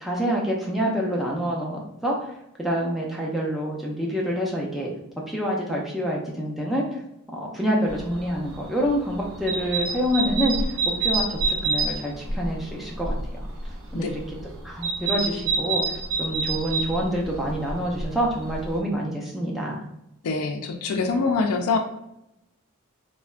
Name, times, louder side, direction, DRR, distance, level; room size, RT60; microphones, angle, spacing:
voice 1, 0.0-2.3 2.6-4.9 5.3-6.9 7.3-13.5 13.9-14.2 14.6-15.8 16.2-19.8, equal, ahead, -3 dB, 0.4 m, -27 dB
sound 1, 7.9-18.8, right 3 dB, 70° right, 0.5 m, -28 dB
voice 2, 20.2-21.8, left 4 dB, 90° left, 4 dB, 0.4 m, -24 dB
3.2 x 2.1 x 2.4 m, 0.85 s
head